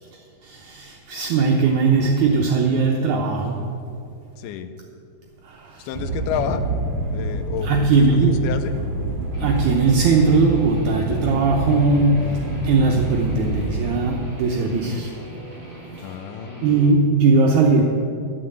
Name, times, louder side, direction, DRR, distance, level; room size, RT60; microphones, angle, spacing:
voice 1, 0.4-3.6 5.4-5.9 7.6-8.5 9.4-15.1 16.0-16.1 16.6-17.8, right 4 dB, 70° right, 0 dB, 1.9 m, -19 dB
voice 2, 4.4-4.7 5.8-6.6 7.1-8.9 16.0-17.0, left 9 dB, 80° left, 10 dB, 2.1 m, -30 dB
sound 1, 5.9-14.5, right 2 dB, 40° right, 1.6 m, -27 dB
Guitar, 9.3-16.9, right 1 dB, 10° left, 1.3 m, -41 dB
11.5 x 6.1 x 7.7 m, 2.5 s
omnidirectional pair, 3.9 m